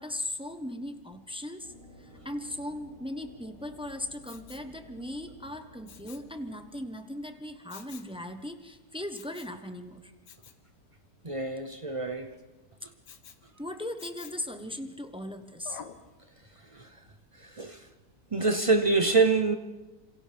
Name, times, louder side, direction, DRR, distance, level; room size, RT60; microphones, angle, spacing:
voice 1, 0.0-10.1 13.6-15.8, left 1 dB, 5° right, 0.7 m, -38 dB
sound 1, 1.6-6.7, equal, 50° left, 5.7 m, -54 dB
Respiratory sounds, 4.2-4.7 5.9-6.3 7.7-8.1 9.1-9.6 10.3-10.6 13.0-13.4 14.0-14.5 15.6-16.0 16.6-16.7, left 7 dB, 85° left, 1.7 m, -48 dB
voice 2, 11.2-12.3 16.7-16.9 17.4-17.8 18.3-19.6, right 3 dB, 55° right, 0.3 m, -26 dB
28.5 x 26.5 x 3.4 m
omnidirectional pair, 1.8 m